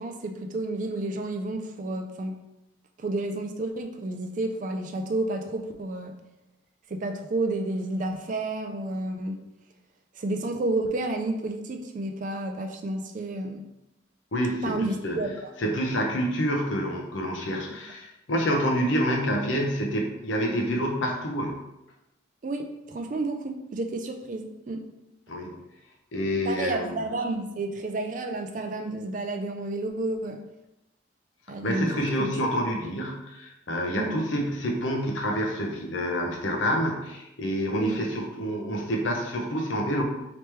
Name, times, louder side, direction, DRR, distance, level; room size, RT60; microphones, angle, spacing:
voice 1, 0.0-2.3 3.0-6.1 6.9-9.4 10.2-13.6 14.6-15.3 22.4-24.8 26.4-30.4 31.5-31.9 32.2-32.3 34.0-34.1 37.8-38.0, right 2 dB, 40° right, 5 dB, 0.4 m, -30 dB
voice 2, 14.3-15.2 15.6-21.6 25.3-25.5 26.1-27.0 31.6-40.0, equal, 75° left, 1 dB, 0.7 m, -27 dB
3.0 x 3.0 x 3.3 m, 0.92 s
head